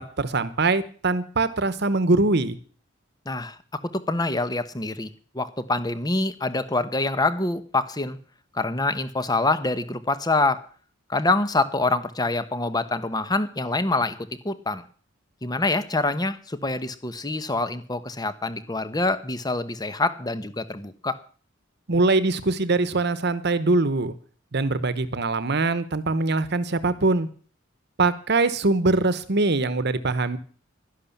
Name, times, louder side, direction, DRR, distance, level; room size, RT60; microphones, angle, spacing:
voice 1, 0.0-2.6 21.9-24.1 24.5-27.3 28.0-30.4, right 3 dB, 55° right, 14 dB, 1.1 m, -22 dB
voice 2, 3.3-5.1 5.3-8.2 8.5-10.6 11.1-14.8 15.4-21.2, left 2 dB, 20° left, 13 dB, 1.0 m, -26 dB
12.0 x 11.0 x 7.2 m, 0.42 s
head